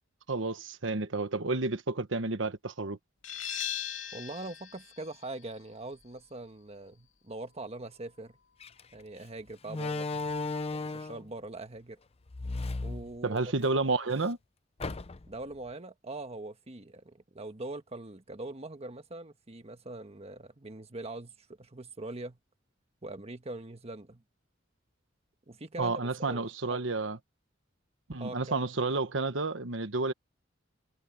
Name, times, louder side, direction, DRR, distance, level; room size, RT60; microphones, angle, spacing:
voice 1, 0.3-3.0 13.2-14.4 25.8-27.2 28.1-30.1, right 3 dB, 75° right, 1.2 m, -30 dB
sound 1, 3.2-8.7, left 10 dB, 85° left, 2.7 m, -41 dB
voice 2, 4.1-8.4 8.9-10.1 10.7-12.0 12.8-13.8 15.3-22.4 23.0-24.2 25.5-26.0 26.3-26.8 28.2-28.6, right 2 dB, 35° right, 1.4 m, -42 dB
Slam, 8.6-8.8 9.7-11.3 12.3-13.7 14.1-14.2 14.8-15.4, left 3 dB, 30° left, 0.6 m, -35 dB
head